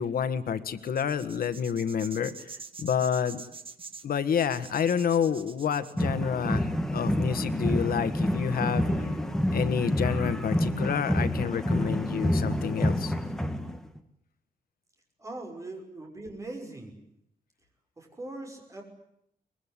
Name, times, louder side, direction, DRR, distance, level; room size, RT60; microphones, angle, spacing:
voice 1, 0.0-2.3 2.8-3.4 4.0-6.7 6.9-9.1 9.5-13.1, left 7 dB, 80° left, 11 dB, 1.6 m, -28 dB
sound 1, 0.8-6.0, right 4 dB, 35° right, 1.7 m, -45 dB
sound 2, 6.0-14.0, equal, 5° left, 1.7 m, -28 dB
sound 3, 8.6-13.8, left 7 dB, 50° left, 2.1 m, -46 dB
voice 2, 15.2-16.9 18.0-18.8, right 2 dB, 20° right, 3 dB, 5.8 m, -40 dB
23.5 x 22.5 x 9.9 m, 0.77 s
wide cardioid pair, 170°, 15 cm